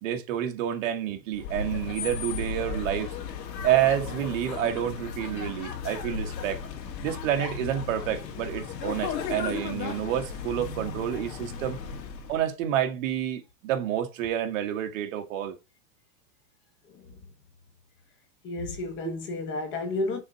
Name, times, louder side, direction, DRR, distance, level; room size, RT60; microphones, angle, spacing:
voice 1, 0.0-3.1 3.6-6.6 7.0-11.8 12.3-15.6 19.0-19.1, right 11 dB, 50° right, 1.5 m, -29 dB
sound 1, 1.3-12.5, left 6 dB, 90° left, 2.0 m, -35 dB
voice 2, 16.9-17.2 18.4-20.2, left 2 dB, 25° left, 1.2 m, -32 dB
6.3 x 3.8 x 4.3 m
supercardioid pair, 170°, 49 cm